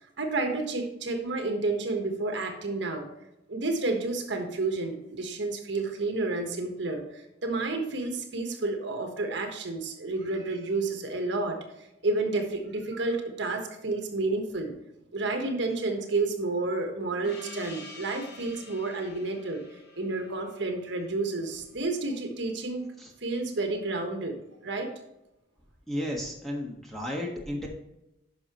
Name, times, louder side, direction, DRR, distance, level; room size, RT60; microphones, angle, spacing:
voice 1, 0.2-3.1 3.5-11.6 12.0-14.7 15.1-19.6 20.0-22.8 23.2-24.9, right 3 dB, 65° right, 4 dB, 1.3 m, -30 dB
Gong, 17.2-22.3, left 2 dB, 55° left, 1.8 m, -48 dB
voice 2, 25.9-27.7, equal, ahead, -2 dB, 1.4 m, -33 dB
10.5 x 6.0 x 3.0 m, 0.89 s
head